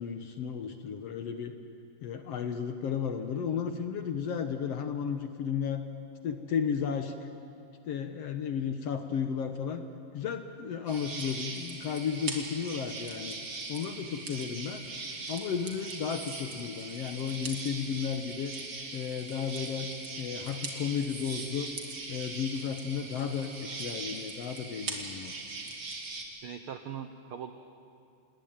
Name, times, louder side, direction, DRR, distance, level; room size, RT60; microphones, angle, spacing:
voice 1, 0.0-1.5 2.0-5.8 6.2-7.1 7.9-9.8 10.1-13.4 13.7-14.8 15.3-18.5 18.9-19.9 20.2-21.7 22.1-25.4, left 7 dB, 60° left, 8 dB, 1.8 m, -33 dB
sound 1, 10.9-26.2, right 3 dB, 40° right, 2.8 m, -40 dB
voice 2, 26.4-27.5, right 8 dB, 75° right, 8 dB, 1.2 m, -40 dB
27.5 x 20.5 x 9.0 m, 2.5 s
omnidirectional pair, 3.8 m